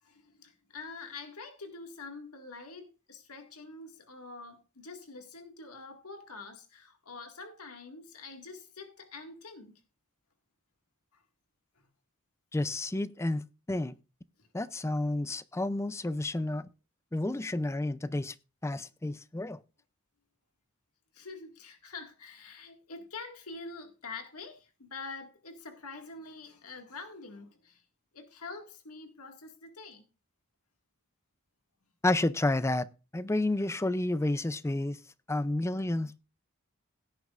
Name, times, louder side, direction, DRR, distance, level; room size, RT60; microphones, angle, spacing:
voice 1, 0.0-9.7 11.1-11.2 17.3-17.4 21.1-27.8 28.1-30.0, left 3 dB, 90° left, 2.0 m, -46 dB
voice 2, 12.5-13.9 14.5-16.7 17.1-18.3 18.6-19.6 32.0-32.9 33.1-35.0 35.3-36.1, left 2 dB, 10° left, 0.4 m, -30 dB
17.0 x 9.4 x 2.5 m
head